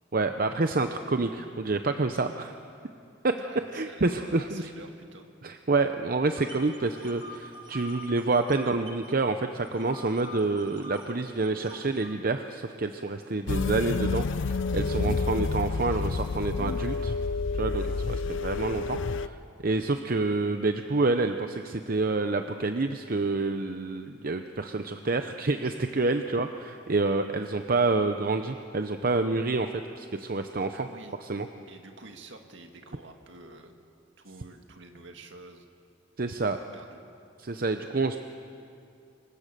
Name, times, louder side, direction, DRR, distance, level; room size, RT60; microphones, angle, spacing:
voice 1, 0.1-2.5 3.2-3.3 3.7-4.6 5.4-17.2 17.5-30.9 31.2-31.5 36.2-36.6 37.4-38.2, right 3 dB, 45° right, 7 dB, 0.7 m, -28 dB
voice 2, 3.4-5.3 30.7-31.2 31.7-33.7 34.2-35.7 36.7-37.0, right 2 dB, 65° right, 4 dB, 2.1 m, -48 dB
sound 1, 6.3-9.1 9.4-12.1, left 1 dB, 25° right, 2.2 m, -46 dB
sound 2, 13.5-19.3, left 4 dB, 75° left, 0.5 m, -29 dB
25.5 x 23.5 x 6.8 m, 2.5 s
head